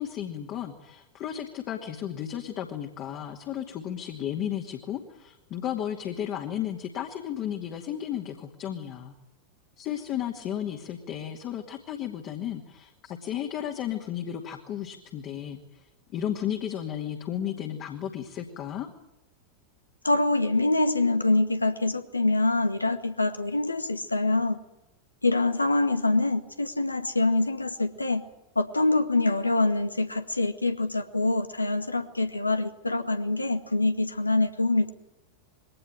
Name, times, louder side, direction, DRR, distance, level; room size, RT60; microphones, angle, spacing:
voice 1, 0.0-9.1 9.8-15.8 16.1-18.9, left 10 dB, 35° left, 2 dB, 2.5 m, -34 dB
voice 2, 20.0-24.6 25.2-28.2 28.6-34.9, left 2 dB, 80° left, 8 dB, 1.9 m, -25 dB
23.0 x 18.0 x 9.1 m, 0.96 s
figure-of-eight pair, 90°, 0 cm